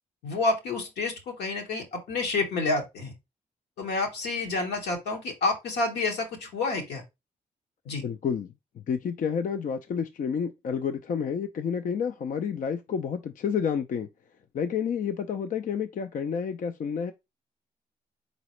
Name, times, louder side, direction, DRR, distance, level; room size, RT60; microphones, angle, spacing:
voice 1, 0.2-3.1 3.8-7.0 7.8-8.0, left 3 dB, 80° left, 1.3 m, -29 dB
voice 2, 8.0-14.1 14.5-17.1, left 7 dB, 55° left, 0.5 m, -30 dB
4.1 x 4.0 x 3.1 m
supercardioid pair, 50°, 17 cm